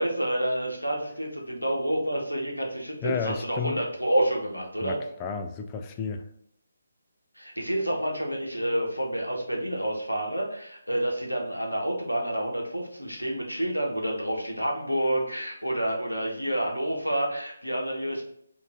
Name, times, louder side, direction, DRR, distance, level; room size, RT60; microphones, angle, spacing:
voice 1, 0.0-5.0 7.4-18.2, right 1 dB, 90° left, 1.0 m, -28 dB
voice 2, 3.0-3.8 4.8-6.3, left 6 dB, 20° left, 0.3 m, -32 dB
3.7 x 2.6 x 3.5 m
figure-of-eight pair, 145°, 0 cm